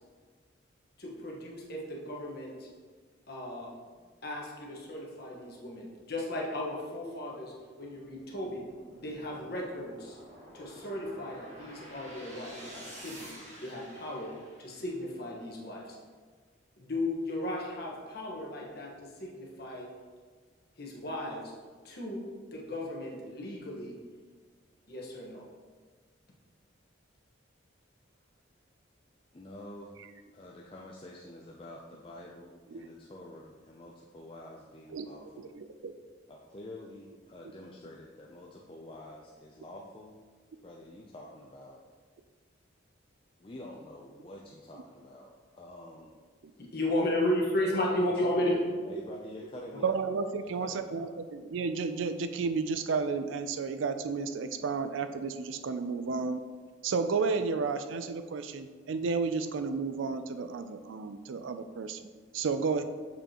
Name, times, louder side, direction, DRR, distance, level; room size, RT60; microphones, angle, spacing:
voice 1, 1.0-2.7 3.3-3.7 4.2-8.6 9.0-10.2 10.5-13.3 13.6-14.3 14.6-16.0 16.8-19.9 20.8-21.5 21.8-22.2 22.5-23.9 24.9-25.4 46.6-48.6, left 1 dB, 50° left, -2 dB, 1.3 m, -34 dB
sound 1, 7.9-15.2, equal, 35° right, 1.5 m, -50 dB
voice 2, 29.3-30.0 30.3-35.5 36.3-40.2 40.6-41.8 43.4-46.1 47.7-48.6 48.8-50.1 50.4-51.1, left 1 dB, 25° left, -2 dB, 0.4 m, -47 dB
voice 3, 35.4-35.9 49.8-56.4 56.8-62.0 62.3-62.8, right 4 dB, 75° right, 9 dB, 0.4 m, -32 dB
6.9 x 5.4 x 2.9 m, 1.5 s
head